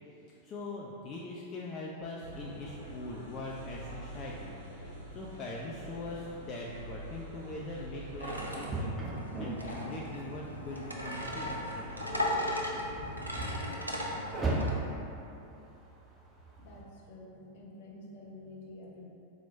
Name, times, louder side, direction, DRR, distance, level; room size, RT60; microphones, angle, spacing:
voice 1, 0.4-4.8 5.1-9.0 9.4-12.0 13.0-13.5, left 2 dB, 30° left, -4 dB, 0.4 m, -42 dB
sound 1, 2.2-8.6, right 1 dB, 65° right, 0.9 m, -46 dB
sound 2, 7.1-16.8, right 2 dB, 15° right, 0.8 m, -39 dB
sword wiffle, 8.2-14.7, left 1 dB, 85° right, 0.4 m, -36 dB
voice 2, 16.6-19.1, left 2 dB, 55° left, -3 dB, 0.7 m, -49 dB
4.4 x 2.1 x 4.2 m, 2.8 s
figure-of-eight pair, 90°, 0 cm